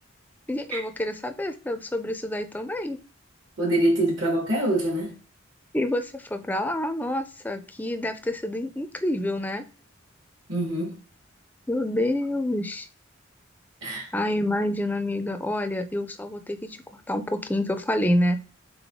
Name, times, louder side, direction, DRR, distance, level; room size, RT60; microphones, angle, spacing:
voice 1, 0.5-3.0 5.7-9.7 11.7-12.9 14.1-18.4, left 1 dB, 10° left, 0.4 m, -28 dB
voice 2, 3.6-5.1 10.5-10.9 13.8-14.1, right 1 dB, 70° right, 1.5 m, -24 dB
3.8 x 3.7 x 3.6 m
head